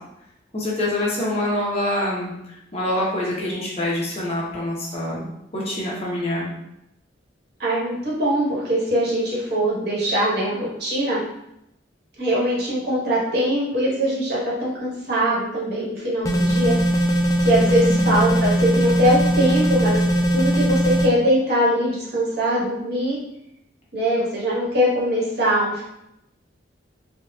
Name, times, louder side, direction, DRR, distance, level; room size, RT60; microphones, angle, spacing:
voice 1, 0.5-5.3 5.5-6.5 17.9-18.1, left 1 dB, 35° left, -5 dB, 0.7 m, -25 dB
voice 2, 7.6-11.2 12.2-16.8 17.0-23.2 23.9-25.8, equal, 60° right, -6 dB, 1.2 m, -22 dB
sound 1, 16.2-21.1, right 1 dB, 15° left, 0.3 m, -20 dB
3.9 x 2.2 x 2.3 m, 0.81 s
head